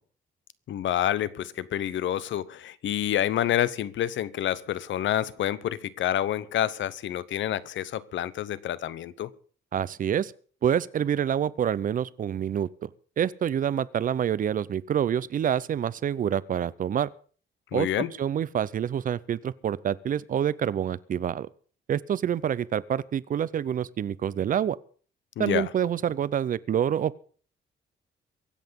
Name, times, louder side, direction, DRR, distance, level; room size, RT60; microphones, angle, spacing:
voice 1, 0.7-9.3 17.7-18.1 25.4-25.7, left 11 dB, 70° left, 0.9 m, -28 dB
voice 2, 9.7-10.3 10.6-12.9 13.2-17.1 17.7-17.9 18.2-21.5 21.9-24.8 25.4-27.2, right 9 dB, 45° right, 0.6 m, -27 dB
23.5 x 8.1 x 5.3 m
wide cardioid pair, 170°, 20 cm